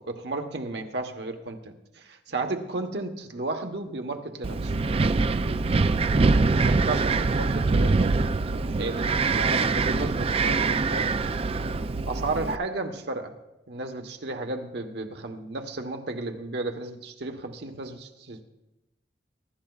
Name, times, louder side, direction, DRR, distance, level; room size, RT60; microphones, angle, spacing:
voice 1, 0.0-4.7 6.4-9.1 9.4-11.2 12.0-13.3 13.7-18.4, right 2 dB, 70° right, 5 dB, 1.2 m, -33 dB
Wind, 4.4-12.6, right 3 dB, 35° right, 0.4 m, -24 dB
23.0 x 12.0 x 2.4 m, 0.96 s
head